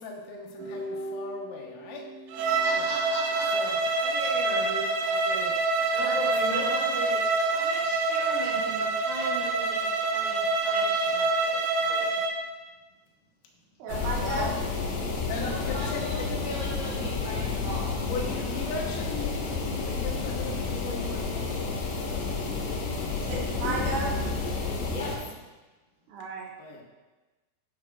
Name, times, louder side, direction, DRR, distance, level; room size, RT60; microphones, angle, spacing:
voice 1, 0.0-2.1 2.4-2.5 2.8-2.9 3.5-3.8 6.0-7.5 13.9-14.6 15.3-16.3 18.0-22.3 24.8-25.1 26.6-26.8, left 4 dB, 85° left, 0 dB, 3.9 m, -38 dB
sound 1, 0.6-3.8, right 2 dB, 50° right, 2.9 m, -40 dB
Bowed string instrument, 2.3-12.4, right 3 dB, 90° right, 3.5 m, -26 dB
voice 2, 2.4-3.6 3.9-5.5 5.9-7.1 7.5-12.2 15.3-17.9 24.9-25.1, equal, 15° right, -6 dB, 1.6 m, -39 dB
voice 3, 13.8-14.5 23.2-24.1 26.1-26.4, right 2 dB, 70° right, -3 dB, 3.7 m, -32 dB
sound 2, 13.9-25.2, left 4 dB, 65° left, 3.6 m, -30 dB
11.5 x 10.5 x 2.4 m, 1.2 s
omnidirectional pair, 5.9 m